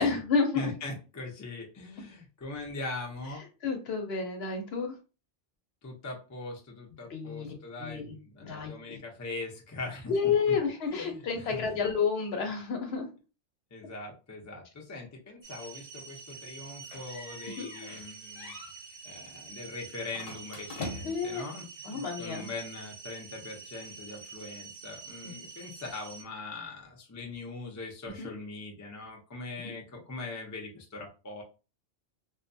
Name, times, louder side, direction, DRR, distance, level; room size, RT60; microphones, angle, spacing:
voice 1, 0.0-0.7 3.6-5.0 7.1-7.5 7.8-8.2 8.4-9.0 10.1-13.1 17.6-17.7 21.0-21.4 21.8-22.5 25.2-25.3 28.2-28.3 29.6-29.7, left 5 dB, 65° left, 3 dB, 0.8 m, -30 dB
voice 2, 0.5-3.4 5.8-10.6 10.9-11.8 13.7-18.5 19.0-31.4, left 2 dB, 25° left, 0 dB, 0.4 m, -41 dB
sound 1, 15.4-26.2, right 5 dB, 55° right, 0.4 m, -47 dB
sound 2, 16.9-18.1 18.4-18.7 20.1-21.3, left 2 dB, 85° left, 1.1 m, -42 dB
2.6 x 2.2 x 2.6 m, 0.33 s
omnidirectional pair, 1.2 m